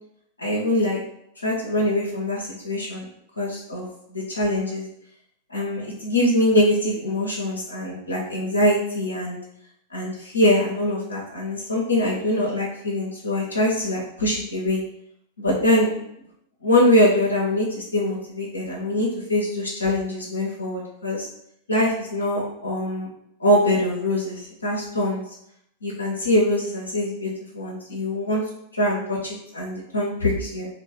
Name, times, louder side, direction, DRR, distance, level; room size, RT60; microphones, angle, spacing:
voice 1, 0.4-1.0 1.4-3.1 3.4-4.8 5.5-9.4 9.9-14.8 15.4-16.0 16.6-21.3 21.7-23.1 23.4-25.2 25.8-28.4 28.7-30.7, left 1 dB, 80° left, -3 dB, 0.5 m, -23 dB
2.3 x 2.2 x 2.9 m, 0.75 s
figure-of-eight pair, 90°, 0 cm